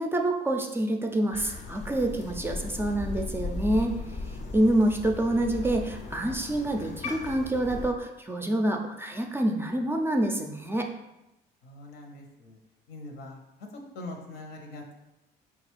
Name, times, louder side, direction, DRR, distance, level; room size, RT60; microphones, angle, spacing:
voice 1, 0.0-3.9 4.5-10.9, right 1 dB, 15° right, 3 dB, 0.4 m, -27 dB
Crow, 1.3-7.9, left 3 dB, 45° left, 0.5 m, -37 dB
voice 2, 11.6-12.6 12.9-13.4 13.7-14.9, left 2 dB, 75° left, 2 dB, 0.8 m, -42 dB
4.0 x 2.4 x 4.4 m, 0.93 s
cardioid pair, 110°, 17 cm